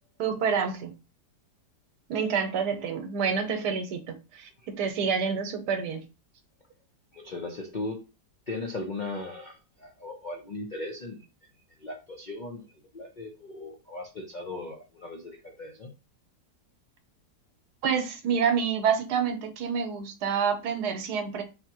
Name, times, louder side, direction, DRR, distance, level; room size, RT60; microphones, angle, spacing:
voice 1, 0.2-0.9 2.1-6.0 17.8-21.4, right 6 dB, 80° right, 1.3 m, -28 dB
voice 2, 7.1-8.0 8.5-11.2 11.8-12.6 12.9-15.9, left 2 dB, 85° left, 0.4 m, -37 dB
4.0 x 2.8 x 2.8 m
omnidirectional pair, 1.8 m